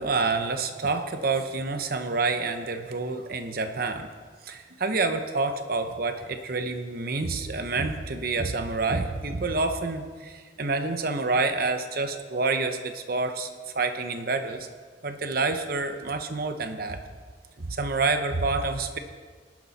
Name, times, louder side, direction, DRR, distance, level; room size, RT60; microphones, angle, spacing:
voice 1, 0.0-4.1 4.5-14.7 15.0-17.0 17.6-19.0, right 3 dB, 55° right, 7 dB, 0.9 m, -28 dB
18.5 x 12.0 x 4.2 m, 1.5 s
head